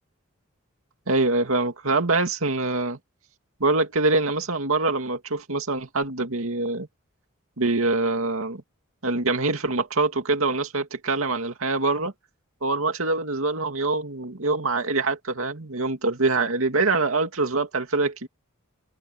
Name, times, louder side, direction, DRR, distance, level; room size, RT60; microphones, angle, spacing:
voice 1, 1.1-3.0 3.6-6.9 7.6-8.6 9.0-12.1 12.6-18.3, right 3 dB, 80° right, 2.4 m, -24 dB
head